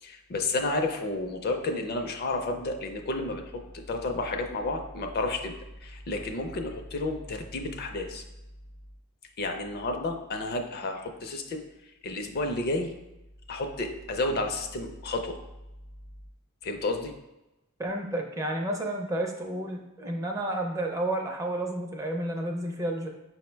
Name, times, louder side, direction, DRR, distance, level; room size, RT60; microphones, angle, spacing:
voice 1, 0.0-3.4 3.7-5.5 5.8-8.2 9.4-11.6 12.0-12.9 13.5-15.4 16.6-17.1, left 2 dB, 45° left, 5 dB, 0.5 m, -31 dB
voice 2, 17.8-23.1, right 1 dB, 15° right, 1 dB, 0.4 m, -31 dB
5.3 x 2.1 x 4.4 m, 0.95 s
head